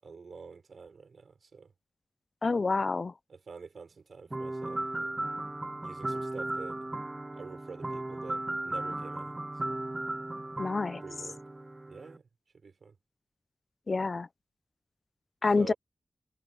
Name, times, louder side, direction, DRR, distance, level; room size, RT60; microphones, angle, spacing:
voice 1, 0.0-1.7 3.3-5.2 5.8-6.9 7.3-9.4 9.7-9.8 11.0-11.4 11.8-12.3 12.6-13.0 15.5-15.8, right 5 dB, 70° right, 5.8 m, -47 dB
voice 2, 2.4-3.1 10.6-11.0 13.9-14.3 15.4-15.7, left 3 dB, 45° left, 0.5 m, -27 dB
sound 1, 4.3-12.2, right 2 dB, 25° right, 1.2 m, -36 dB
wide cardioid pair, 110°, 0 cm